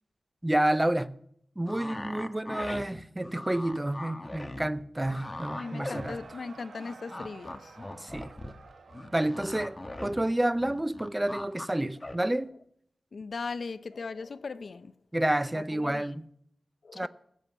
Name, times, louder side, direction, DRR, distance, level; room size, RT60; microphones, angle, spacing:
voice 1, 0.4-1.2 1.6-6.2 8.0-8.3 9.1-12.5 15.1-16.3 16.9-17.1, right 1 dB, 15° right, 0.5 m, -29 dB
sound 1, 1.6-6.5 6.8-10.2 10.5-11.7 12.0-12.2, left 1 dB, 20° left, 1.2 m, -40 dB
Cheering / Crowd, 5.0-11.7, right 4 dB, 80° right, 1.3 m, -52 dB
voice 2, 5.5-7.8 13.1-14.9 15.5-16.1 16.8-17.1, left 4 dB, 60° left, 0.5 m, -39 dB
16.5 x 7.4 x 8.1 m
wide cardioid pair, 125°, 0 cm